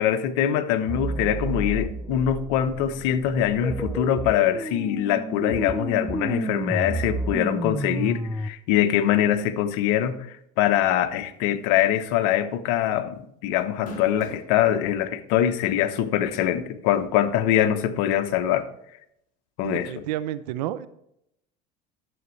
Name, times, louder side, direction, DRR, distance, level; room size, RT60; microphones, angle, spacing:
voice 1, 0.0-10.2 10.6-18.7 19.6-20.0, left 11 dB, 75° left, 11 dB, 0.9 m, -23 dB
sound 1, 0.9-8.5, right 2 dB, 5° right, 0.5 m, -31 dB
sound 2, 11.9-12.1 12.5-12.6 13.6-14.5 15.3-15.4 16.9-17.0, left 1 dB, 45° left, 3.3 m, -39 dB
voice 2, 19.6-20.9, right 12 dB, 85° right, 15 dB, 0.6 m, -30 dB
11.0 x 8.0 x 3.2 m, 0.75 s
supercardioid pair, 95°, 21 cm